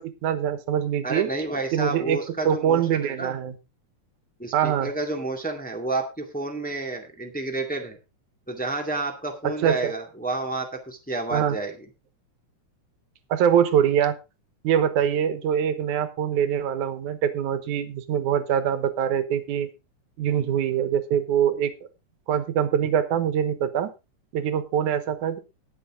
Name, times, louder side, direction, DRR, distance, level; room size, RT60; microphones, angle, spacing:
voice 1, 0.0-1.3 1.7-2.2 2.5-3.6 4.5-4.9 9.4-9.9 11.3-11.6 13.3-14.1 14.6-19.7 20.2-21.7 22.3-23.9 24.3-25.4, right 9 dB, 90° right, 12 dB, 2.6 m, -23 dB
voice 2, 1.0-3.3 4.4-8.0 8.5-11.9, right 2 dB, 5° left, 3 dB, 1.5 m, -30 dB
19.0 x 7.0 x 3.7 m, 0.27 s
omnidirectional pair, 3.4 m